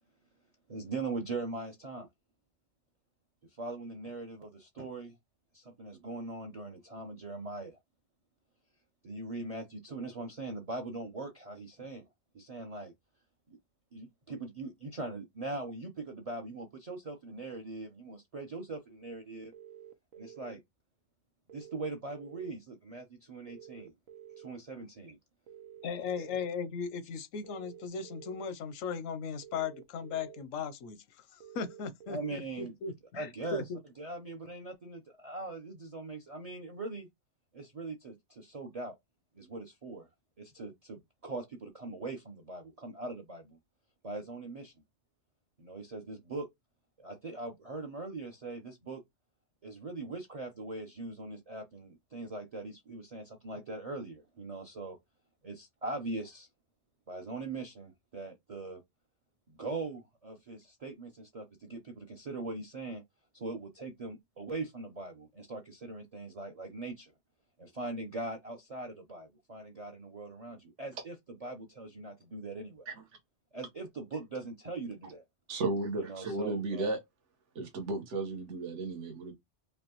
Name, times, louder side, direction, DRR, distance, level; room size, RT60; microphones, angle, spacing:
voice 1, 0.7-2.1 3.6-5.2 5.5-7.8 9.0-12.0 12.3-12.9 13.5-13.6 13.9-19.5 20.1-20.6 21.5-23.9 24.4-25.2 32.1-32.7 33.1-33.6 34.0-37.1 37.5-39.0 39.3-40.1 40.4-43.6 44.0-44.7 45.6-46.5 47.0-49.0 49.6-55.0 55.4-56.5 57.1-58.8 59.5-63.0 63.3-67.1 67.6-71.1 71.4-72.9 73.5-75.3 76.0-76.9, right 3 dB, 35° right, 0.6 m, -41 dB
sound 1, 19.5-20.5 21.5-22.5 23.5-24.5 25.5-26.5 27.4-28.5 29.4-30.4 31.4-32.4, right 9 dB, 90° right, 1.1 m, -51 dB
voice 2, 25.8-33.8, left 5 dB, 85° left, 1.0 m, -37 dB
voice 3, 75.5-77.0 77.5-79.3, right 2 dB, 70° right, 1.5 m, -34 dB
5.2 x 2.2 x 2.9 m
omnidirectional pair, 1.3 m